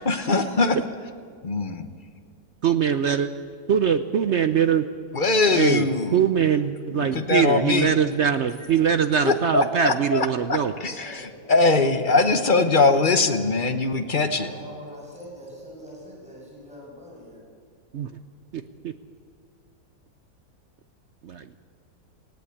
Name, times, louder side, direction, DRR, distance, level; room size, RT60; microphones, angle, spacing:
voice 1, 0.0-0.8 1.4-1.9 5.1-6.2 6.9-7.9 9.2-14.5, left 3 dB, 35° left, 8 dB, 1.0 m, -22 dB
voice 2, 2.6-3.3 3.7-4.8 5.5-5.9 6.1-10.7 17.9-18.1 18.5-18.9 21.2-21.6, right 8 dB, 70° right, 10 dB, 0.6 m, -22 dB
voice 3, 11.0-11.9 14.4-17.5, equal, 5° right, -4 dB, 6.8 m, -43 dB
18.5 x 17.0 x 8.5 m, 2.2 s
omnidirectional pair, 1.9 m